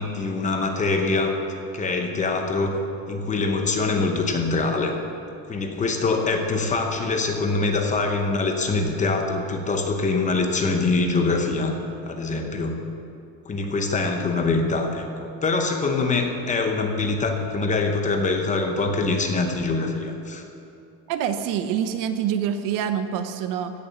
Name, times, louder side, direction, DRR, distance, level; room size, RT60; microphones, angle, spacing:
voice 1, 0.0-1.4 1.7-2.8 3.1-4.9 5.5-11.8 12.0-12.8 13.5-20.4, left 3 dB, 20° left, 4 dB, 0.8 m, -24 dB
voice 2, 21.1-23.9, right 8 dB, 55° right, 9 dB, 0.8 m, -26 dB
16.5 x 7.0 x 7.0 m, 2.6 s
cardioid pair, 180°, 38 cm